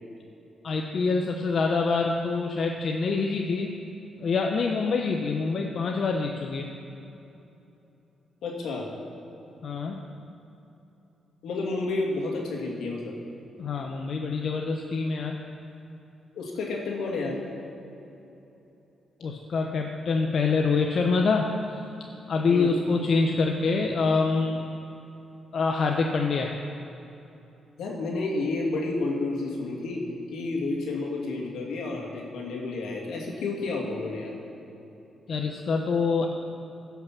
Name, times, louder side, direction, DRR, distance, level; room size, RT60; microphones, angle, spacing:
voice 1, 0.6-3.8 4.2-6.7 9.6-10.0 13.6-15.4 19.2-21.6 22.3-24.6 25.5-26.6 35.3-36.3, left 4 dB, 60° left, 2 dB, 0.8 m, -25 dB
voice 2, 8.4-8.9 11.4-13.1 16.4-17.4 22.5-22.7 27.8-30.0 30.3-34.3, left 3 dB, 80° left, -2 dB, 2.1 m, -30 dB
15.5 x 5.8 x 5.9 m, 3.0 s
cardioid pair, 70°, 0 cm